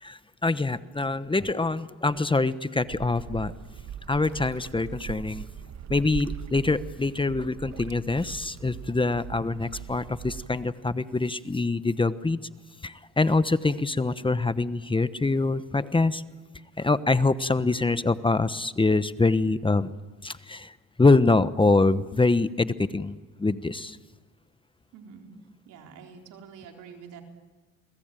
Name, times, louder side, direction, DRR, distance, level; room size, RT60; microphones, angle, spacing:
voice 1, 0.0-3.5 4.1-5.5 5.9-12.4 12.8-16.2 16.8-19.9 20.2-20.7 21.0-24.0, left 3 dB, 15° left, 13 dB, 1.0 m, -24 dB
sound 1, 2.8-10.5, right 8 dB, 65° right, 1.5 m, -40 dB
voice 2, 24.9-25.3 25.7-27.2, right 6 dB, 90° right, 2 dB, 4.2 m, -47 dB
29.5 x 21.5 x 9.1 m, 1.3 s
cardioid pair, 90°, 30 cm